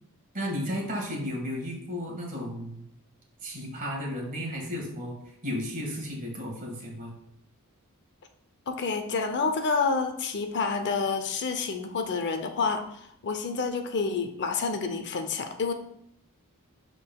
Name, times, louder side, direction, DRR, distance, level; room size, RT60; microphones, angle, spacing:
voice 1, 0.3-2.8 3.4-5.1 5.4-7.1, equal, 40° right, 0 dB, 1.6 m, -33 dB
voice 2, 8.7-15.7, left 4 dB, 50° left, 6 dB, 0.6 m, -29 dB
11.0 x 3.8 x 2.3 m, 0.72 s
head